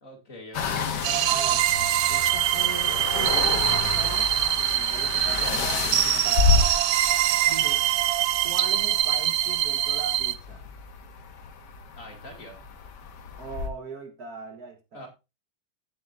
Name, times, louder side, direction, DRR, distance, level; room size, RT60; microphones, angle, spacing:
voice 1, 0.0-1.3 7.2-7.4 11.9-12.6 14.9-15.1, left 1 dB, 40° left, 4 dB, 2.6 m, -45 dB
sound 1, 0.5-13.7, left 5 dB, 60° left, 1.7 m, -30 dB
sound 2, 1.0-10.3, right 13 dB, 75° right, 1.4 m, -24 dB
voice 2, 1.3-1.6 2.1-4.3 4.6-6.7 7.5-7.9 8.4-10.6 13.4-15.1, right 5 dB, 50° right, 7 dB, 1.5 m, -39 dB
15.0 x 7.3 x 2.5 m, 0.25 s
omnidirectional pair, 2.2 m